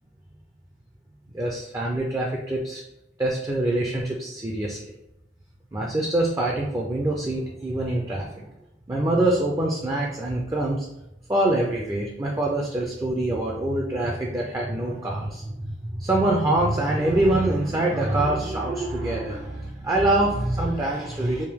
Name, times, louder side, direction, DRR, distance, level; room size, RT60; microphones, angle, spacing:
voice 1, 1.3-2.8 3.2-4.8 5.7-8.5 8.9-10.9 11.3-21.5, right 1 dB, 15° right, -1 dB, 0.3 m, -25 dB
3.5 x 2.5 x 3.4 m, 0.90 s
head